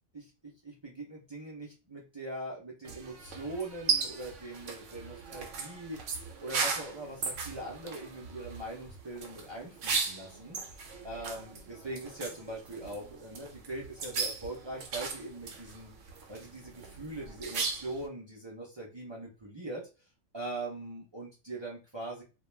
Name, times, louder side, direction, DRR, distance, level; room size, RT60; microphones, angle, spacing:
voice 1, 0.6-10.8 11.0-15.9 16.3-19.8 20.3-22.2, right 2 dB, 40° right, -3 dB, 0.4 m, -41 dB
sound 1, 2.8-18.1, right 5 dB, 75° right, 0.9 m, -37 dB
2.3 x 2.2 x 3.1 m, 0.31 s
omnidirectional pair, 1.3 m